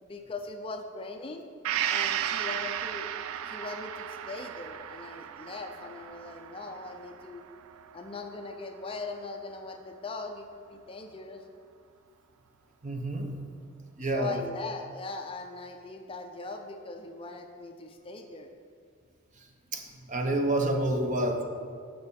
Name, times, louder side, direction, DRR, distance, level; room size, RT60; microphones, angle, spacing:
voice 1, 0.0-1.4 1.8-3.1 3.4-7.4 7.9-11.4 14.1-18.5, left 3 dB, 25° left, 5 dB, 0.4 m, -40 dB
Gong, 1.6-9.3 9.7-9.8, right 10 dB, 85° right, 0.3 m, -35 dB
voice 2, 12.8-13.3 14.0-14.4 19.7-21.4, right 1 dB, 35° right, 3 dB, 0.7 m, -28 dB
6.9 x 5.8 x 5.2 m, 2.2 s
head